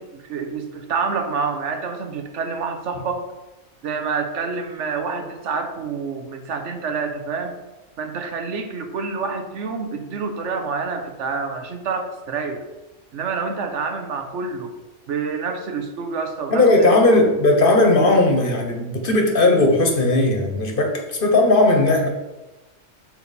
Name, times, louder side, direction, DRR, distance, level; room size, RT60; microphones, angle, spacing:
voice 1, 0.0-3.2 3.8-7.6 8.0-12.7 13.1-14.7 15.1-17.0, right 5 dB, 75° right, 5 dB, 1.1 m, -27 dB
voice 2, 16.5-22.1, left 2 dB, 50° left, 2 dB, 1.1 m, -17 dB
7.1 x 4.1 x 4.1 m, 1.1 s
omnidirectional pair, 1.3 m